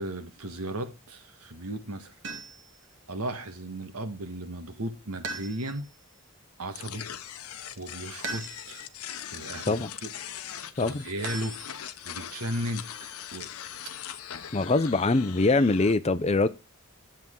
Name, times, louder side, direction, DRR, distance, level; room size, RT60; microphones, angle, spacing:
voice 1, 0.0-2.1 3.1-5.9 6.6-7.1 7.8-8.8 9.2-10.1 10.8-11.6 12.0-12.9 13.3-13.5, right 1 dB, 85° right, 1.7 m, -35 dB
sound 1, 2.2-2.8 5.2-6.0 8.2-8.9 11.2-12.1, right 3 dB, 55° right, 1.3 m, -39 dB
sound 2, 6.8-15.9, left 9 dB, 85° left, 0.8 m, -41 dB
voice 2, 14.5-16.5, left 3 dB, 30° left, 0.5 m, -23 dB
10.5 x 7.5 x 3.8 m
head